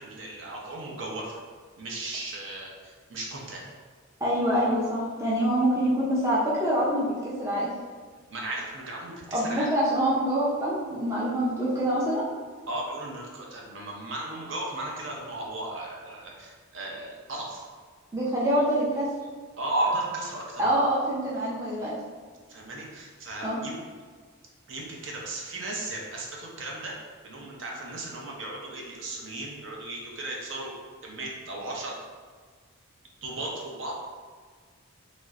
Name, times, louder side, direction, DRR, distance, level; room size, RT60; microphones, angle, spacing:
voice 1, 0.0-1.4 1.8-3.6 8.3-9.7 12.7-17.6 19.6-20.6 22.5-23.8 24.7-26.9 27.2-30.7 31.0-32.0 33.2-33.9, right 2 dB, 60° right, -2 dB, 0.6 m, -35 dB
voice 2, 4.2-7.7 9.3-12.2 18.1-19.1 20.6-21.9 23.4-23.6, right 1 dB, 15° right, -7 dB, 0.4 m, -25 dB
3.1 x 2.8 x 2.4 m, 1.5 s
head